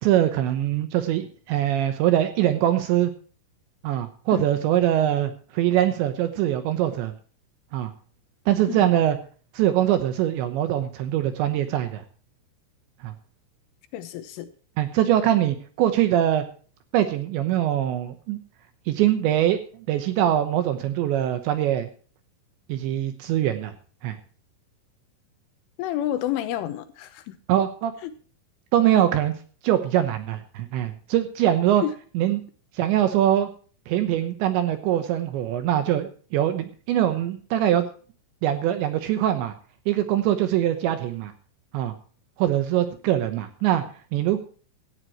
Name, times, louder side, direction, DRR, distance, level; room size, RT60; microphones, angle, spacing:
voice 1, 0.0-3.1 3.8-7.1 7.7-7.9 8.5-9.2 9.5-12.0 13.0-13.1 14.8-16.4 16.9-18.4 18.9-19.6 19.9-21.9 22.7-23.7 24.0-24.2 27.5-27.9 28.7-29.3 29.6-31.8 32.2-32.4 32.7-33.5 33.9-37.9 38.4-39.5 39.9-41.3 41.7-41.9 42.4-43.8 44.1-44.4, right 12 dB, 75° right, 9 dB, 3.0 m, -23 dB
voice 2, 13.9-14.5 25.8-27.4 28.0-28.1 28.9-29.1 31.8-31.9, left 12 dB, 80° left, 10 dB, 3.4 m, -29 dB
17.5 x 14.0 x 3.0 m, 0.41 s
omnidirectional pair, 5.8 m